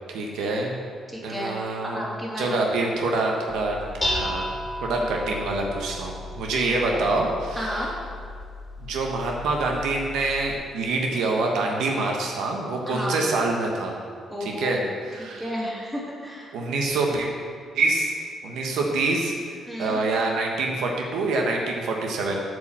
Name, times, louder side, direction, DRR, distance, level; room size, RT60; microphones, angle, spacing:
voice 1, 0.1-0.7 1.2-2.0 2.4-3.8 4.1-4.4 4.8-7.9 8.8-13.9 14.4-15.5 16.5-17.3 17.7-18.1 18.4-19.3 19.8-22.4, right 3 dB, 85° right, 0 dB, 1.1 m, -26 dB
voice 2, 1.1-1.5 1.8-2.6 5.0-5.3 6.5-7.0 7.6-7.9 12.9-13.2 14.3-14.8 15.2-16.5 19.7-20.0, equal, 5° right, -5 dB, 2.6 m, -32 dB
Dishes pots and pans, 3.5-10.6, left 1 dB, 15° left, 2.4 m, -34 dB
8.4 x 4.8 x 7.3 m, 2.1 s
cardioid pair, 90°, 0 cm